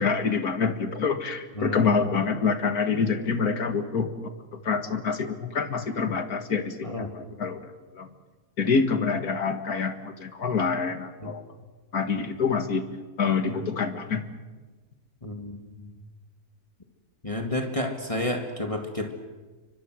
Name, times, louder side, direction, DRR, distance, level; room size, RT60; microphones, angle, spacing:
voice 1, 0.0-4.1 4.5-7.6 7.9-8.1 8.6-11.4 11.9-12.9 13.2-14.2, left 5 dB, 85° left, 7 dB, 2.3 m, -26 dB
voice 2, 6.8-7.1 11.2-11.3 13.5-13.6 15.2-16.1 17.2-19.1, left 1 dB, 20° left, 3 dB, 2.1 m, -31 dB
29.0 x 24.5 x 6.4 m, 1.3 s
omnidirectional pair, 1.6 m